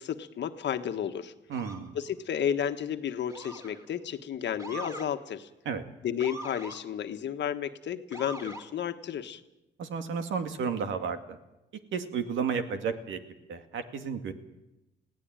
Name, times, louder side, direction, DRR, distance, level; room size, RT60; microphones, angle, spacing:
voice 1, 0.0-1.3 1.9-5.5 6.0-9.4, left 9 dB, 65° left, 8 dB, 1.5 m, -32 dB
Motor vehicle (road) / Siren, 1.5-1.9 3.3-3.9 4.6-5.1 6.2-6.8 8.1-8.7, right 1 dB, 15° right, 3.3 m, -41 dB
voice 2, 1.5-1.9 5.7-5.8 9.8-11.4 11.9-13.2 13.5-14.3, right 6 dB, 75° right, 7 dB, 2.3 m, -32 dB
21.5 x 16.5 x 9.1 m, 0.95 s
cardioid pair, 90°, 20 cm